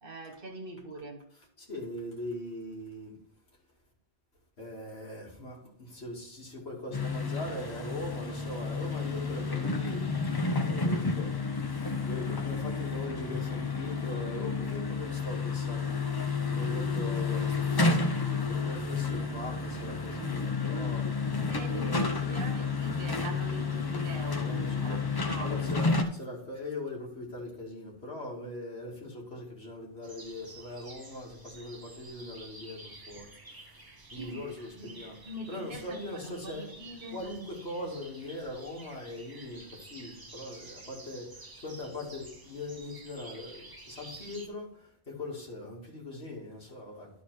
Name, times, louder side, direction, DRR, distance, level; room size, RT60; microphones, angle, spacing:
voice 1, 0.0-1.3 21.5-25.0 25.3-25.9 34.1-34.4 34.8-37.2, right 1 dB, 55° right, 1.4 m, -42 dB
voice 2, 1.6-3.1 4.6-10.1 10.6-11.3 12.0-16.0 16.5-21.0 21.7-22.1 24.3-25.0 25.4-33.3 34.1-35.2 35.5-36.7 37.1-39.6 39.9-41.3 41.6-44.7 45.1-47.1, left 2 dB, 70° left, 2.5 m, -40 dB
sound 1, 6.9-26.0, left 4 dB, 25° left, 0.6 m, -31 dB
sound 2, 30.0-44.5, right 2 dB, 20° right, 0.9 m, -50 dB
11.0 x 4.2 x 4.7 m
omnidirectional pair, 1.1 m